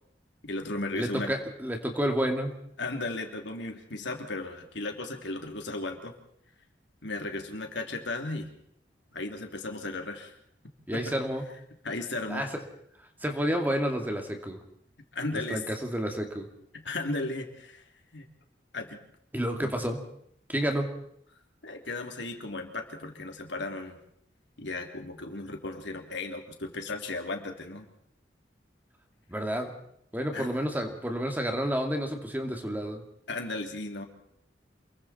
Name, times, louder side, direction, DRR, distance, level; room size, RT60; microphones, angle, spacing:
voice 1, 0.4-1.3 2.8-6.1 7.0-8.5 9.1-10.3 10.9-11.1 11.8-12.5 15.1-15.6 16.7-17.8 18.1-18.2 18.7-19.0 21.6-24.0 24.6-27.8 30.3-30.5 33.3-34.0, left 2 dB, 75° left, 3 dB, 3.2 m, -35 dB
voice 2, 0.9-2.5 10.9-11.4 12.3-12.5 13.2-14.6 15.5-16.5 19.3-20.0 20.5-20.9 29.3-29.7 30.1-33.0, equal, 10° right, 4 dB, 2.4 m, -30 dB
28.5 x 22.0 x 4.4 m, 0.70 s
head